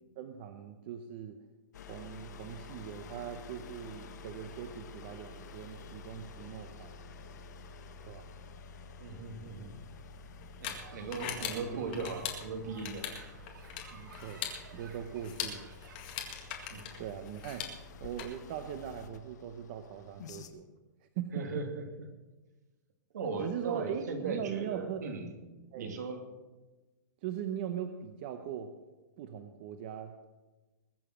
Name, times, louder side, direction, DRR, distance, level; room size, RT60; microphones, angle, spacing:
voice 1, 0.2-1.4 1.9-6.9 8.0-8.2 11.1-11.9 13.9-14.4 14.7-15.7 17.0-17.7 18.0-20.7 21.2-21.4 23.4-25.0 25.7-26.0 27.2-28.7 29.2-30.3, right 9 dB, 30° right, 8 dB, 0.7 m, -40 dB
sound 1, 1.7-20.5, left 3 dB, 65° left, 1.5 m, -50 dB
voice 2, 9.0-9.8 10.6-13.2 16.7-17.0 21.3-21.8 23.1-25.3 25.8-26.2, right 4 dB, 65° right, 4 dB, 2.6 m, -38 dB
sound 2, 9.5-18.2, left 9 dB, 30° left, 2.0 m, -42 dB
sound 3, 10.7-16.0, right 4 dB, 90° right, 3.0 m, -54 dB
21.5 x 7.2 x 6.2 m, 1.2 s
hypercardioid pair, 175°, 10 cm